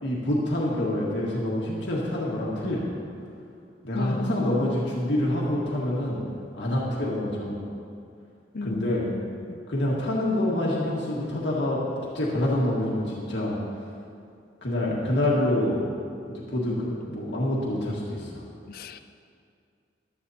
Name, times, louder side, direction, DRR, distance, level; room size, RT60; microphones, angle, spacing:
voice 1, 0.0-2.8 3.8-6.2 6.5-7.6 8.6-9.0 9.7-11.8 12.1-13.5 14.6-15.8 16.2-18.4, left 1 dB, 85° left, -4 dB, 1.7 m, -26 dB
voice 2, 3.9-4.9 8.5-9.6 18.7-19.0, left 3 dB, 55° left, 11 dB, 0.5 m, -35 dB
14.5 x 11.5 x 2.8 m, 2.4 s
head